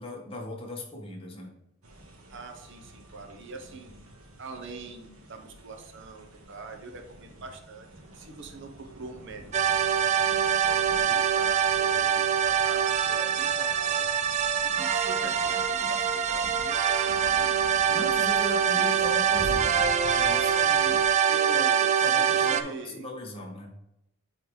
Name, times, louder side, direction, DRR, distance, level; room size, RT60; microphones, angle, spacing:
voice 1, 0.0-1.5 17.9-19.8 20.2-21.0 21.3-21.7 22.0-23.7, left 1 dB, 25° left, -1 dB, 1.1 m, -38 dB
sound 1, 1.8-21.1, equal, 85° right, 1.2 m, -47 dB
voice 2, 2.3-4.0 4.4-7.9 8.1-10.0 10.7-14.1 14.6-17.5 17.9-18.0 18.7-19.2 20.8-23.1, right 3 dB, 60° right, 5 dB, 0.8 m, -44 dB
sound 2, 9.5-22.6, right 8 dB, 35° right, 0.3 m, -24 dB
9.5 x 3.3 x 3.1 m, 0.85 s
head